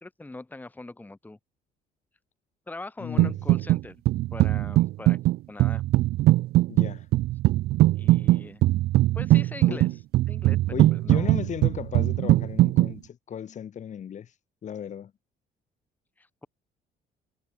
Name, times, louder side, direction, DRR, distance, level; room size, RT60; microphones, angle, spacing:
voice 1, 0.0-1.4 2.7-4.0 4.3-5.2 5.5-5.8 8.0-8.6 9.1-9.9 10.3-10.6 10.9-11.3 16.2-16.5, left 2 dB, 10° left, 1.5 m, -41 dB
voice 2, 3.0-3.4 6.7-7.1 9.7-9.8 10.7-14.3 14.6-15.1, left 8 dB, 45° left, 1.9 m, -35 dB
sound 1, 3.2-3.8 4.1-12.9, right 16 dB, 70° right, 0.5 m, -21 dB
cardioid pair, 110°, 17 cm